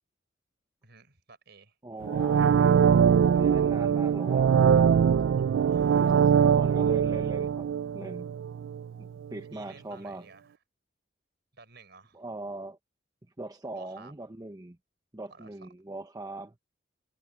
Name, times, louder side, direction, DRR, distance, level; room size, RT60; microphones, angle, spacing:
voice 1, 0.8-1.8 5.7-6.2 9.5-10.6 11.5-12.2 13.7-14.1 15.3-15.7, right 4 dB, 60° right, 4.8 m, -53 dB
voice 2, 1.8-2.5 3.3-4.6 6.1-8.3 9.0-10.2 12.1-12.8 13.4-14.8 15.1-16.6, right 2 dB, 20° right, 0.9 m, -40 dB
sound 1, 2.0-8.9 9.2-9.3, right 7 dB, 80° right, 0.3 m, -22 dB
head